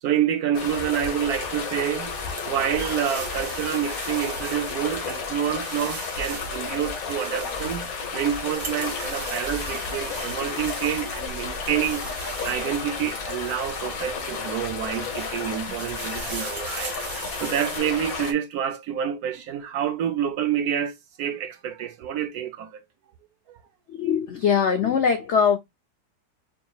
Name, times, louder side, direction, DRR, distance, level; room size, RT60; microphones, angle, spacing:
voice 1, 0.0-12.1 12.4-17.0 17.3-22.8 23.5-23.6, right 9 dB, 70° right, 0.9 m, -28 dB
sound 1, 0.5-18.3, left 4 dB, 55° left, 1.4 m, -32 dB
sound 2, 2.1-14.4 14.8-17.8, right 4 dB, 40° right, 1.0 m, -40 dB
voice 2, 23.9-25.6, left 7 dB, 75° left, 0.6 m, -21 dB
5.1 x 2.8 x 2.3 m
omnidirectional pair, 1.9 m